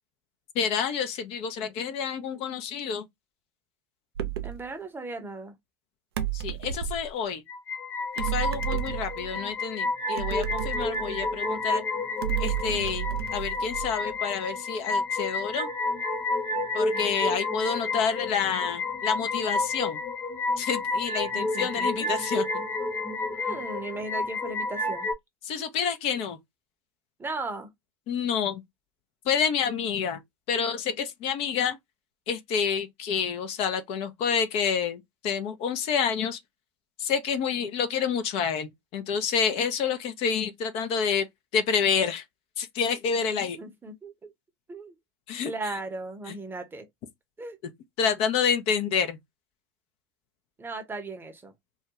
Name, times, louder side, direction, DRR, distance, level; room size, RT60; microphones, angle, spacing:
voice 1, 0.6-3.1 6.3-7.4 8.2-11.8 12.4-15.7 16.7-20.0 20.6-22.4 25.4-26.4 28.1-28.6 29.3-30.2 30.5-31.8 32.3-36.4 37.0-41.3 41.5-42.2 42.6-43.6 45.3-45.5 46.3-46.4 48.0-49.2, left 6 dB, 50° left, 0.5 m, -28 dB
sound 1, 4.2-4.6 6.2-7.1 8.2-9.4 10.2-11.5 12.2-14.1, right 12 dB, 80° right, 0.4 m, -32 dB
voice 2, 4.4-5.6 16.9-17.4 21.3-22.1 23.3-25.1 25.6-25.7 27.2-27.7 43.2-44.3 44.7-45.0 45.4-46.9 47.4-47.6 50.6-51.5, right 2 dB, 15° right, 0.7 m, -37 dB
sound 2, 7.5-25.1, left 2 dB, 25° left, 1.0 m, -30 dB
2.2 x 2.2 x 2.8 m
hypercardioid pair, 90°, 13 cm